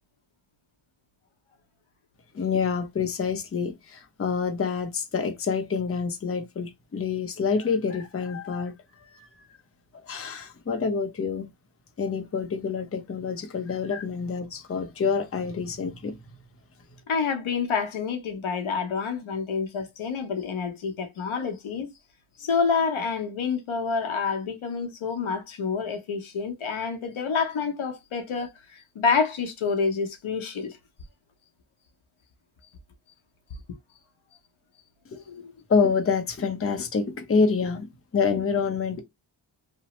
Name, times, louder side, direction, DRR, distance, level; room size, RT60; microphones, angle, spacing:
voice 1, 2.3-8.7 9.1-9.3 10.0-11.5 12.0-16.2 35.7-39.0, left 5 dB, 30° left, 0.6 m, -27 dB
voice 2, 17.1-21.9 22.4-28.5 29.0-30.7 35.3-35.5, left 5 dB, 80° left, 0.8 m, -28 dB
2.9 x 2.0 x 3.0 m
wide cardioid pair, 100°, 48 cm